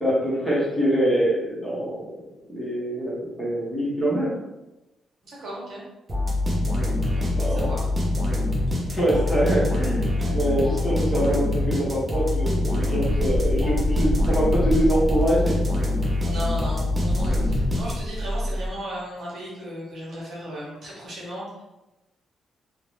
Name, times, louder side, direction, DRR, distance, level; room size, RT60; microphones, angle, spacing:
voice 1, 0.0-2.1 2.5-4.3 7.3-7.7 8.9-15.5, right 1 dB, 10° left, -8 dB, 0.9 m, -24 dB
voice 2, 5.2-5.8 7.1-7.8 10.2-10.4 16.3-21.6, equal, 50° right, -6 dB, 1.1 m, -36 dB
sound 1, 6.1-18.3, left 2 dB, 20° right, 0.6 m, -25 dB
sound 2, 13.0-16.4 17.1-18.7, equal, 80° right, 0.7 m, -27 dB
2.7 x 2.1 x 3.1 m, 1.0 s
cardioid pair, 170°, 0 cm